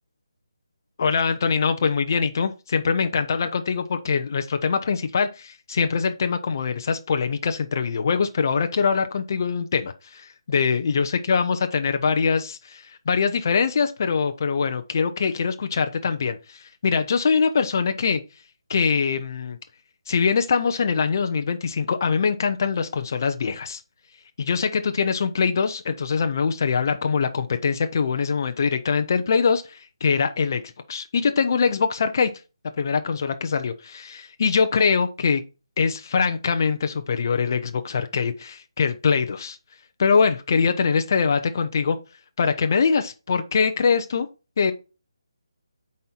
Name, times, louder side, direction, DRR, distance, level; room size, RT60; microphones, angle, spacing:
voice 1, 1.0-18.2 18.7-19.6 20.1-23.8 24.4-30.6 30.9-32.3 32.8-35.4 35.8-39.6 40.0-42.0 42.4-44.3 44.6-44.7, left 5 dB, 40° left, 0.6 m, -23 dB
7.4 x 4.3 x 4.3 m
hypercardioid pair, 170°, 3 cm